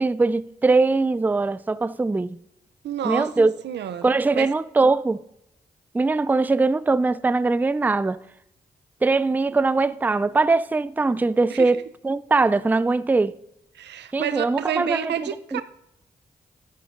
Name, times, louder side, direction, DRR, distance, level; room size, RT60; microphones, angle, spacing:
voice 1, 0.0-2.4 3.0-3.5 4.0-5.2 5.9-8.2 9.0-13.3 14.1-15.6, right 3 dB, 10° right, 0.3 m, -21 dB
voice 2, 2.8-4.5 11.5-11.7 13.8-15.6, right 10 dB, 75° right, 0.5 m, -30 dB
12.0 x 11.0 x 2.5 m
supercardioid pair, 40°, 18 cm